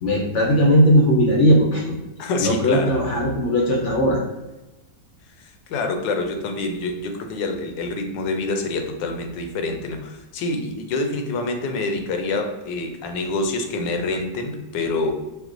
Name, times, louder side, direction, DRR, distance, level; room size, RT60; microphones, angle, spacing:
voice 1, 0.0-1.9 2.4-4.2, equal, 65° left, -1 dB, 0.7 m, -18 dB
voice 2, 2.2-2.9 5.7-15.1, left 3 dB, 85° left, 5 dB, 1.3 m, -26 dB
4.7 x 2.1 x 3.7 m, 1.0 s
omnidirectional pair, 1.9 m